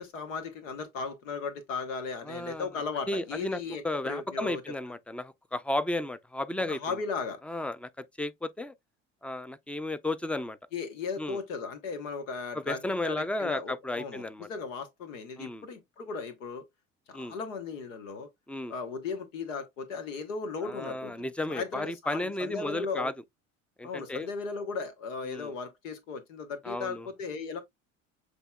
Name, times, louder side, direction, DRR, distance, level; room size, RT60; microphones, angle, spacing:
voice 1, 0.0-4.6 6.7-7.4 10.7-16.6 17.1-18.3 18.7-23.1 23.8-27.6, left 5 dB, 85° left, 1.1 m, -36 dB
voice 2, 2.2-2.7 3.1-7.0 7.4-8.8 9.2-10.6 11.2-11.4 12.5-14.5 15.4-15.7 17.1-17.4 18.5-18.7 20.6-23.1 23.8-24.3 25.3-25.5 26.6-27.1, left 1 dB, 5° left, 0.4 m, -34 dB
7.9 x 3.0 x 2.2 m
hypercardioid pair, 75°, 38 cm